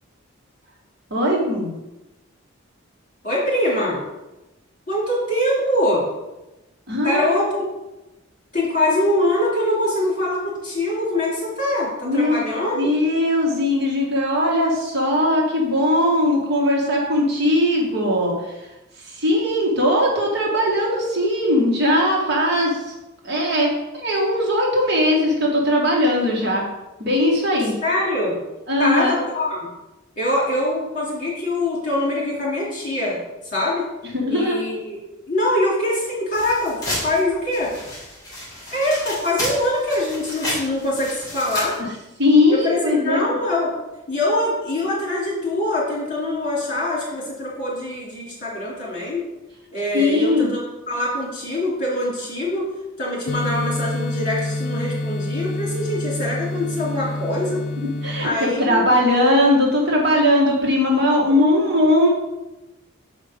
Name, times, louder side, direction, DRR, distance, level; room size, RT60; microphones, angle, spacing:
voice 1, 1.1-1.8 6.9-7.4 12.0-12.4 12.7-18.7 19.0-22.9 23.2-26.6 27.0-27.7 28.7-29.1 34.1-34.6 42.2-43.3 49.9-50.5 57.8-62.1, left 1 dB, 55° right, -2 dB, 1.7 m, -19 dB
voice 2, 3.2-4.0 4.9-6.0 7.0-7.6 8.5-12.9 27.8-28.4 28.8-29.6 30.2-33.2 33.5-33.9 34.3-35.0 35.3-37.7 38.7-41.8 42.5-43.7 44.1-49.2 49.7-50.6 50.9-52.7 53.0-57.6 58.2-58.8, left 1 dB, 40° left, -5 dB, 2.8 m, -23 dB
sound 1, 36.3-41.8, left 1 dB, 20° left, 2.8 m, -31 dB
sound 2, 53.3-58.3, left 2 dB, 60° left, 0.7 m, -27 dB
6.4 x 5.1 x 5.1 m, 1.0 s
head